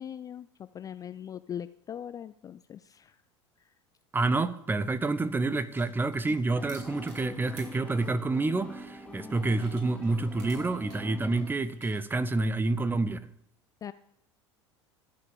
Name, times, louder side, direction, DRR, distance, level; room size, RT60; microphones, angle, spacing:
voice 1, 0.0-3.2 13.8-13.9, left 9 dB, 25° left, 0.4 m, -40 dB
voice 2, 4.1-13.2, right 3 dB, 15° right, 0.7 m, -28 dB
sound 1, 4.2-12.9, right 3 dB, 50° right, 4.9 m, -57 dB
sound 2, 6.5-11.5, equal, 5° left, 1.2 m, -43 dB
14.0 x 5.5 x 7.1 m
figure-of-eight pair, 75°, 15 cm